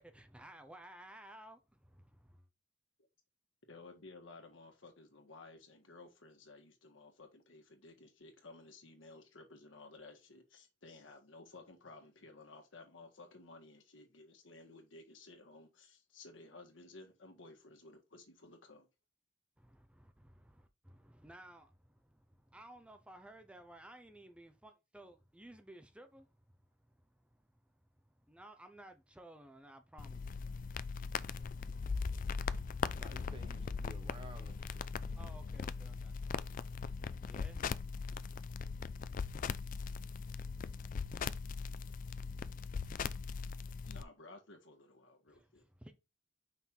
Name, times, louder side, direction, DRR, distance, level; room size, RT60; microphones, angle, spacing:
voice 1, 0.0-2.4 19.6-26.3 26.9-27.6 28.0-30.9 35.2-38.3 45.3-45.9, right 1 dB, 5° right, 0.6 m, -57 dB
voice 2, 3.7-18.9 43.8-45.6, left 3 dB, 85° left, 1.7 m, -56 dB
sound 1, 30.0-44.0, left 5 dB, 45° left, 0.3 m, -40 dB
voice 3, 32.7-34.8, right 2 dB, 25° right, 1.0 m, -54 dB
5.7 x 4.5 x 3.7 m
head